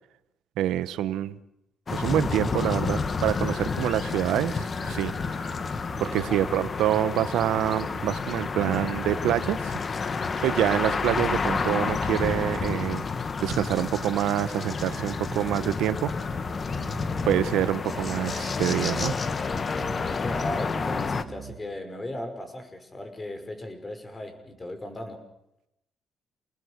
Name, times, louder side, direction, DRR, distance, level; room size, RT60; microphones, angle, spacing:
voice 1, 0.6-1.4 1.9-5.5 6.0-9.8 10.4-13.0 13.4-16.1 17.3-19.1, right 12 dB, 90° right, 14 dB, 1.0 m, -26 dB
sound 1, 1.9-21.2, left 4 dB, 40° left, 1.6 m, -30 dB
sound 2, 4.0-22.5, right 7 dB, 60° right, 2.1 m, -48 dB
voice 2, 6.0-6.4 20.2-25.2, left 1 dB, 25° left, 7 dB, 5.8 m, -37 dB
30.0 x 20.0 x 6.7 m, 0.84 s
cardioid pair, 90°, 0 cm